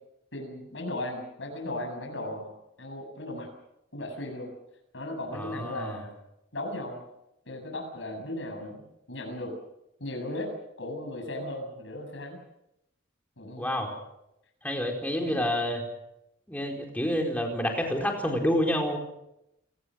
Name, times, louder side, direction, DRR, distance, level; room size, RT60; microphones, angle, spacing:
voice 1, 0.3-2.5 2.8-3.5 3.9-4.5 4.9-6.1 6.5-7.0 7.5-8.8 9.1-9.5 10.0-10.5 10.8-12.4 13.4-13.7 15.1-15.4, left 1 dB, 70° left, 3 dB, 7.2 m, -36 dB
voice 2, 5.3-6.0 13.6-13.9 14.6-15.9 16.5-19.0, equal, 10° left, 2 dB, 4.4 m, -28 dB
29.5 x 18.0 x 6.4 m, 0.85 s
head